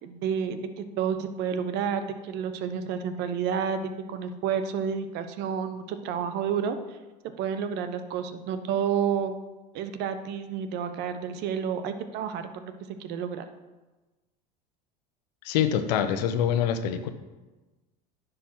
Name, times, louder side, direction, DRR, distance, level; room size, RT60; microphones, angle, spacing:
voice 1, 0.0-3.8 4.1-7.0 7.4-9.3 9.7-13.5, right 7 dB, 55° right, 9 dB, 1.0 m, -30 dB
voice 2, 15.4-17.1, left 9 dB, 80° left, 9 dB, 1.0 m, -25 dB
10.0 x 5.2 x 6.1 m, 1.2 s
supercardioid pair, 105°, 21 cm